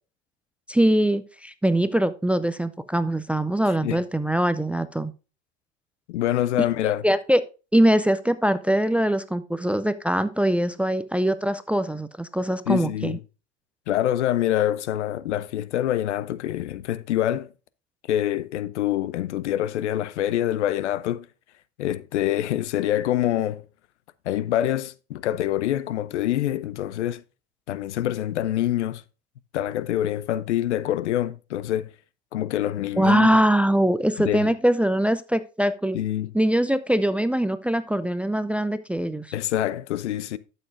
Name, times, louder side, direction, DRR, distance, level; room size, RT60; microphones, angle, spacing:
voice 1, 0.7-5.1 7.0-7.4 7.7-13.2 33.0-36.0 36.3-39.3, right 1 dB, 5° right, 0.4 m, -22 dB
voice 2, 6.1-7.0 12.7-13.2 13.9-17.5 18.1-21.3 21.8-23.6 24.3-27.2 27.7-29.0 29.5-31.9 32.3-33.3 34.2-34.5 35.9-36.3 39.3-40.4, left 12 dB, 80° left, 0.7 m, -25 dB
12.0 x 7.0 x 2.5 m
hypercardioid pair, 95°, 35 cm